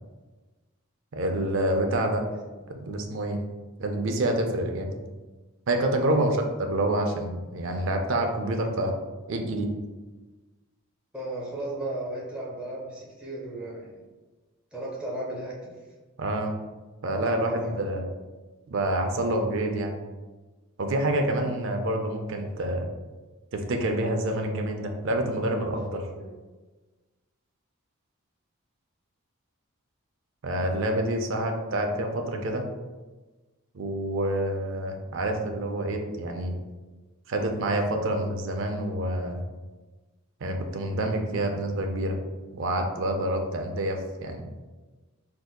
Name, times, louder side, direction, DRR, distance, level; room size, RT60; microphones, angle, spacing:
voice 1, 1.1-2.2 2.7-3.4 3.8-4.9 5.7-6.4 6.7-8.9 9.3-9.7 16.2-16.6 17.0-18.1 18.7-20.0 20.8-22.9 23.5-26.0 30.4-32.6 33.7-36.5 37.3-39.4 40.4-42.2 42.5-44.5, right 1 dB, 55° right, 4 dB, 0.4 m, -27 dB
voice 2, 11.1-14.0 14.7-15.7 17.1-17.8 25.5-25.6 25.9-26.3, right 1 dB, 5° right, -6 dB, 0.6 m, -36 dB
3.6 x 2.7 x 2.2 m, 1.2 s
head